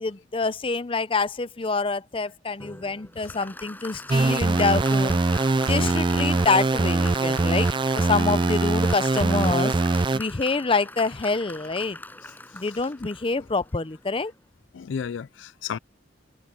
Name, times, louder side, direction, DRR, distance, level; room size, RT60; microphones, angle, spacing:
voice 1, 0.0-5.2 5.6-7.7 7.9-9.7 10.1-12.0 12.5-14.3, left 4 dB, 30° left, 0.6 m, -26 dB
Applause, 2.6-14.5, left 2 dB, 10° left, 6.3 m, -41 dB
sound 1, 4.1-10.2, right 3 dB, 25° right, 0.4 m, -22 dB
voice 2, 14.7-15.8, left 7 dB, 80° left, 0.4 m, -33 dB
head